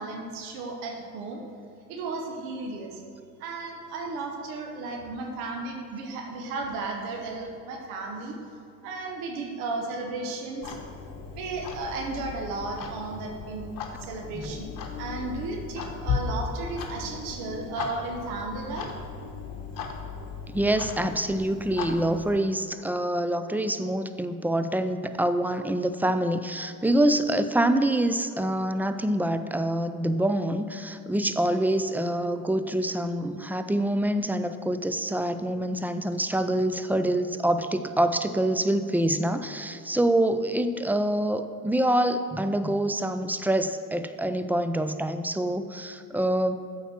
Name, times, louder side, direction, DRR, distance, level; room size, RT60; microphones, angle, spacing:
voice 1, 0.0-1.4 1.9-3.0 3.4-8.4 8.8-10.8 11.3-13.7 14.0-18.9, right 3 dB, 90° right, 2 dB, 1.1 m, -34 dB
Clock, 10.6-22.4, left 5 dB, 55° left, 1.0 m, -36 dB
voice 2, 20.5-46.6, right 1 dB, 5° right, 9 dB, 0.3 m, -26 dB
8.0 x 4.7 x 5.8 m, 2.5 s
supercardioid pair, 70°, 40 cm